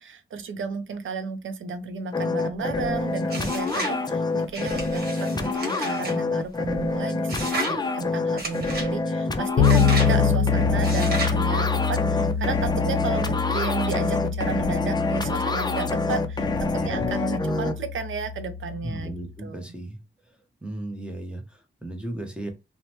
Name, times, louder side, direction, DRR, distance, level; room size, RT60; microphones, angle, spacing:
voice 1, 0.0-19.1 19.4-19.6, right 5 dB, 75° right, 0.5 m, -33 dB
sound 1, 2.1-17.7, left 3 dB, 20° left, 0.3 m, -26 dB
sound 2, 3.3-4.0 4.5-6.2 7.3-7.8 8.4-8.9 9.6-10.1 10.8-11.4, right 2 dB, 50° right, 1.1 m, -33 dB
Bass guitar, 9.6-19.2, left 6 dB, 85° left, 0.5 m, -26 dB
voice 2, 16.7-17.1 18.8-20.0 20.6-22.5, right 1 dB, 5° right, 0.7 m, -35 dB
3.0 x 2.0 x 2.9 m
wide cardioid pair, 100°, 21 cm